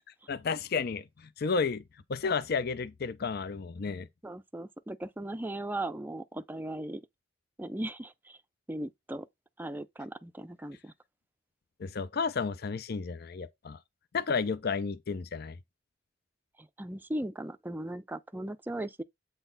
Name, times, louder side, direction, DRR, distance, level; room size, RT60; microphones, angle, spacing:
voice 1, 0.3-1.8 2.1-4.1 11.8-13.8 14.1-15.6, left 5 dB, 55° left, 0.5 m, -32 dB
voice 2, 4.2-7.0 7.6-8.4 8.7-9.3 9.6-10.9 16.6-19.0, right 1 dB, 10° right, 0.4 m, -38 dB
7.9 x 3.9 x 3.9 m
head